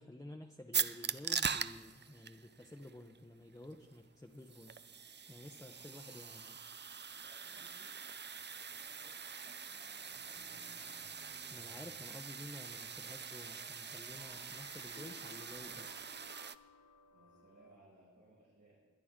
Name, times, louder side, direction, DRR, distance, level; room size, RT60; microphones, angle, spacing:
voice 1, 0.0-4.8 5.3-6.6 11.5-16.1, left 1 dB, 10° left, 2 dB, 0.8 m, -52 dB
sound 1, 0.7-16.6, right 6 dB, 35° right, 0.4 m, -43 dB
voice 2, 5.3-5.8 7.2-11.2 17.1-18.8, right 1 dB, 90° right, -9 dB, 5.6 m, -66 dB
Engine, 6.4-15.0, right 1 dB, 60° right, 2.7 m, -68 dB
sound 2, 12.8-17.8, left 5 dB, 65° left, 1.0 m, -61 dB
21.5 x 10.0 x 3.7 m, 1.3 s
wide cardioid pair, 65°, 30 cm